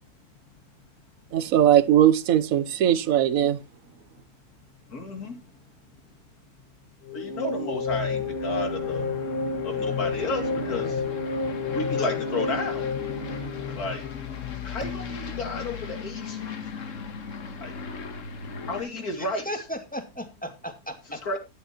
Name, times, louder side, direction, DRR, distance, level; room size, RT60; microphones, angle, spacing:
voice 1, 1.3-3.6, right 11 dB, 70° right, 1.3 m, -20 dB
voice 2, 4.9-5.4 7.1-9.1 9.6-11.1 11.7-12.9 13.7-14.1 14.6-16.4 17.6-17.7 18.7-19.4 21.3-21.4, left 2 dB, 80° left, 3.1 m, -32 dB
sound 1, 7.0-14.3, left 4 dB, 35° left, 2.0 m, -30 dB
Aircraft, 7.9-18.8, left 5 dB, 60° left, 1.6 m, -36 dB
voice 3, 19.2-21.2, equal, 5° left, 2.1 m, -36 dB
13.5 x 10.0 x 3.0 m
omnidirectional pair, 1.6 m